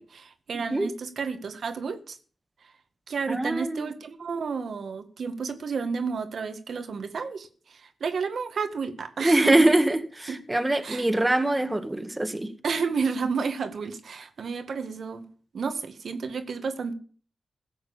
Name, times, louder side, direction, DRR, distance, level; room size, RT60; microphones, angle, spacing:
voice 1, 0.0-2.2 3.1-9.7 10.3-10.4 10.8-11.1 12.6-15.2 15.5-16.9, right 5 dB, 70° right, 8 dB, 1.9 m, -31 dB
voice 2, 3.3-3.8 9.2-12.5, right 1 dB, 20° right, 7 dB, 1.9 m, -23 dB
16.0 x 6.6 x 8.6 m, 0.44 s
cardioid pair, 60°, 0 cm